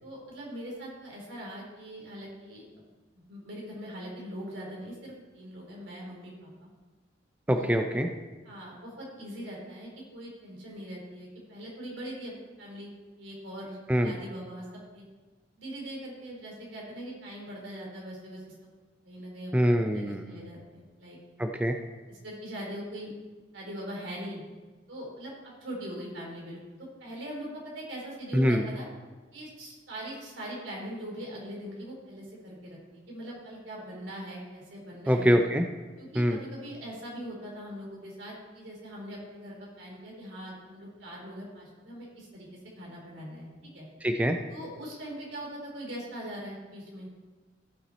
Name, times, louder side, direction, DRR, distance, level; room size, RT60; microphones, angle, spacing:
voice 1, 0.0-2.8 3.1-6.7 7.5-7.8 8.4-12.9 13.2-14.7 14.9-15.0 15.6-18.4 19.0-21.2 22.1-23.1 23.5-24.4 24.9-28.9 29.3-35.3 36.0-42.5 42.8-43.9 44.5-47.1, equal, 75° right, -3 dB, 3.7 m, -41 dB
voice 2, 7.5-8.1 13.9-14.1 19.5-20.4 21.4-21.7 28.3-28.6 35.1-35.6 36.2-36.4 44.0-44.4, equal, 10° right, 5 dB, 0.5 m, -24 dB
15.5 x 5.9 x 4.1 m, 1.3 s
head